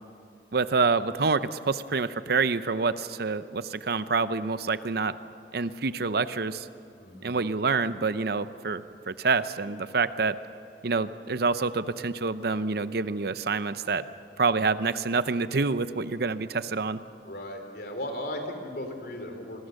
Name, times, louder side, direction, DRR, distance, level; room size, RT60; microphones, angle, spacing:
voice 1, 0.5-5.1 5.5-6.7 7.2-10.4 10.8-14.0 14.4-17.0, right 4 dB, 60° right, 13 dB, 0.7 m, -27 dB
voice 2, 7.0-7.3 17.2-19.7, left 1 dB, 60° left, 5 dB, 3.4 m, -36 dB
26.5 x 21.5 x 6.5 m, 2.5 s
head